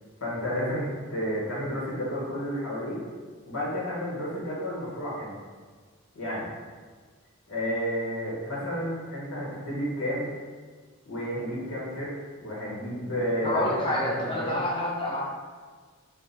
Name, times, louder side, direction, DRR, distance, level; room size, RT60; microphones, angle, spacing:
voice 1, 0.2-3.0 3.4-5.3 6.1-6.5 7.5-10.3 11.0-12.1 12.4-14.6, equal, 85° left, -7 dB, 1.4 m, -31 dB
voice 2, 13.4-15.3, left 1 dB, 25° left, -5 dB, 0.5 m, -28 dB
3.6 x 2.5 x 4.1 m, 1.5 s
head